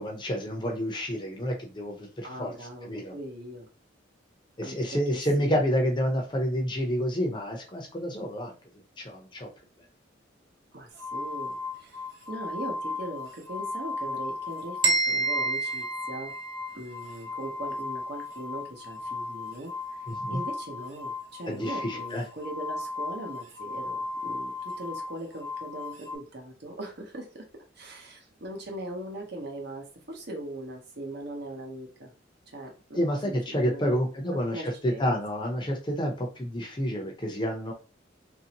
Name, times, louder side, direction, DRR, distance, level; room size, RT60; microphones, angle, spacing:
voice 1, 0.0-2.5 2.8-3.1 4.6-8.5 9.0-9.5 20.1-20.4 21.5-22.2 32.9-37.7, equal, 25° left, 1 dB, 0.6 m, -29 dB
voice 2, 2.2-3.7 4.6-5.6 10.7-16.3 16.7-27.5 27.7-32.1 32.5-35.2, right 1 dB, 55° right, 2 dB, 0.9 m, -40 dB
sound 1, 11.0-14.9 15.2-26.2, left 3 dB, 80° right, 1.0 m, -36 dB
sound 2, 14.8-16.8, right 3 dB, 25° right, 0.5 m, -27 dB
3.0 x 2.6 x 2.8 m, 0.34 s
head